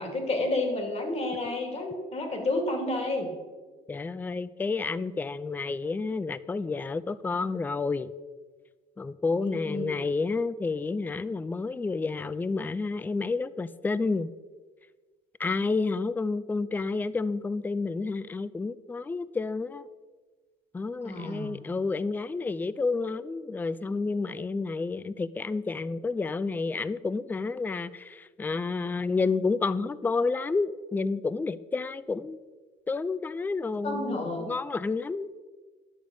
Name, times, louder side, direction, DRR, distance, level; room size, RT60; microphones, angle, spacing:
voice 1, 0.0-3.3 9.4-10.0 21.0-21.5 33.8-34.5, left 2 dB, 40° left, 3 dB, 2.2 m, -30 dB
voice 2, 3.9-8.1 9.0-14.3 15.4-19.9 20.7-32.4 32.9-35.4, left 4 dB, 10° left, 17 dB, 0.3 m, -30 dB
11.0 x 7.0 x 5.1 m, 1.4 s
cardioid pair, 110°, 17 cm